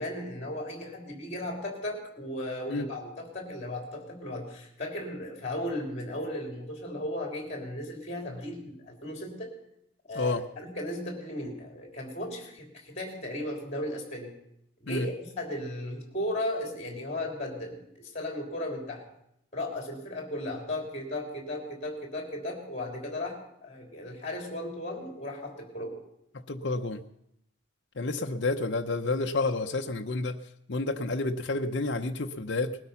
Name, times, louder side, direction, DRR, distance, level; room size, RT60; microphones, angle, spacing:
voice 1, 0.0-9.5 10.1-14.3 14.8-19.0 19.5-26.0, left 1 dB, 30° left, 2 dB, 3.4 m, -36 dB
voice 2, 26.5-27.0 28.0-30.4 30.7-32.8, left 3 dB, 55° left, 3 dB, 0.7 m, -29 dB
19.5 x 12.5 x 5.8 m, 0.76 s
head